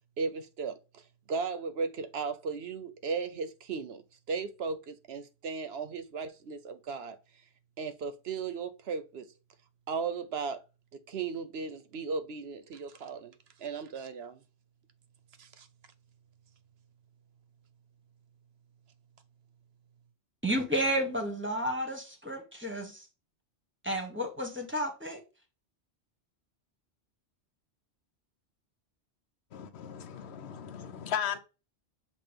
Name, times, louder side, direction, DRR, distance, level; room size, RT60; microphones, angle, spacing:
voice 1, 0.2-1.0 1.3-4.0 4.3-7.2 7.8-9.3 9.9-10.6 10.9-13.3 13.6-14.4 15.4-15.7, right 5 dB, 65° right, 1.0 m, -36 dB
voice 2, 20.4-23.1 23.8-25.2, equal, 10° right, 1.2 m, -32 dB
voice 3, 29.5-31.4, left 8 dB, 70° left, 1.0 m, -36 dB
7.5 x 2.5 x 5.1 m
omnidirectional pair, 1.2 m